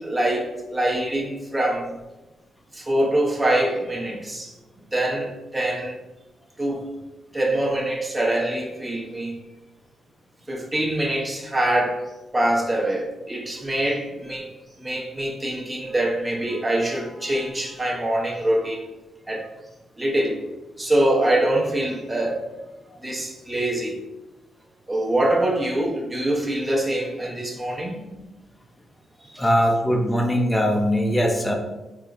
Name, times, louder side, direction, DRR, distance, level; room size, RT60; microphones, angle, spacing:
voice 1, 0.0-2.0 2.7-4.5 4.9-6.0 6.6-6.9 7.3-9.4 10.5-14.5 14.8-18.8 19.3-19.5 20.0-20.4 20.8-22.5 23.0-24.0 24.9-28.0 29.2-29.5, right 1 dB, 15° right, 0.8 m, -24 dB
voice 2, 29.4-31.5, equal, 15° left, 0.6 m, -21 dB
3.5 x 2.1 x 3.7 m
cardioid pair, 80°, 0 cm